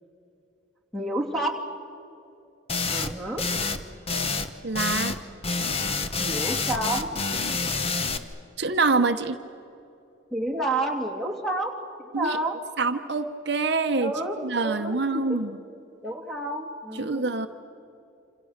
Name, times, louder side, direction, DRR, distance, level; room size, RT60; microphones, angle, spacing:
voice 1, 0.9-1.6 2.9-3.5 6.2-7.1 10.3-12.5 14.0-15.4 16.0-17.3, right 1 dB, ahead, 1 dB, 2.8 m, -30 dB
sound 1, 2.7-3.1 3.4-3.8 4.1-5.2 5.4-8.2, left 4 dB, 30° left, 1.1 m, -27 dB
voice 2, 4.6-5.1 8.6-9.4 12.1-12.4 12.8-14.1 14.4-15.6 17.0-17.5, right 3 dB, 60° right, 7 dB, 0.9 m, -25 dB
27.5 x 27.5 x 6.6 m, 2.7 s
head